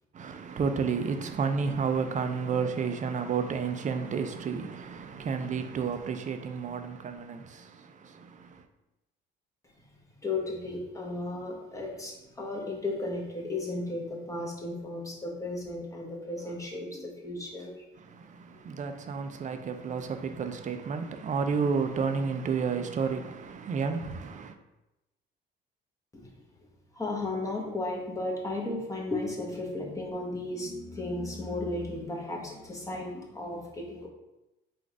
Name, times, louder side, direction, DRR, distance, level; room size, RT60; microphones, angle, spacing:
voice 1, 0.1-8.6 18.0-24.6, right 5 dB, 35° right, 0.5 m, -31 dB
voice 2, 10.2-17.9 18.5-18.6 26.1-26.3 26.9-34.1, left 2 dB, 15° left, 1.1 m, -35 dB
3.9 x 2.5 x 4.6 m
supercardioid pair, 85°, 20 cm